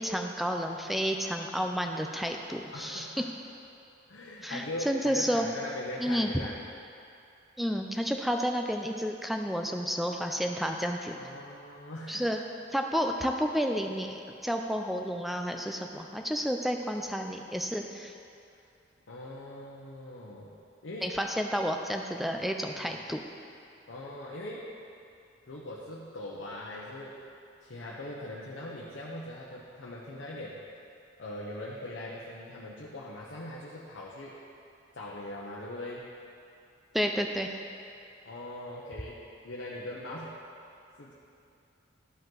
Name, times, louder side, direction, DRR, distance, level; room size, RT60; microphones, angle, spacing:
voice 1, 0.0-3.1 4.4-5.5 6.0-6.3 7.6-11.2 12.1-12.4 12.7-18.1 21.0-23.2 36.9-37.5, equal, ahead, 3 dB, 0.4 m, -31 dB
voice 2, 2.7-3.2 4.1-6.6 11.1-12.3 19.1-20.5 20.8-21.1 22.8-23.0 23.9-24.7 25.5-27.2 27.6-30.6 31.2-34.4 34.9-36.0 38.2-39.2 39.4-40.3 41.0-41.1, left 1 dB, 80° left, -5 dB, 0.9 m, -41 dB
12.5 x 5.3 x 3.9 m, 2.6 s
head